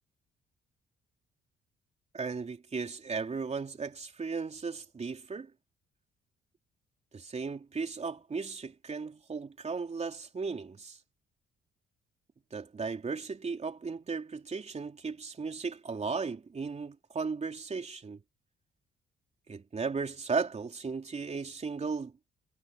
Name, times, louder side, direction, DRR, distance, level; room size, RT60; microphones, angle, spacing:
voice 1, 2.1-5.5 7.1-11.0 12.5-18.2 19.5-22.1, right 4 dB, 35° right, 3.3 m, -36 dB
cardioid pair, 90°, 20 cm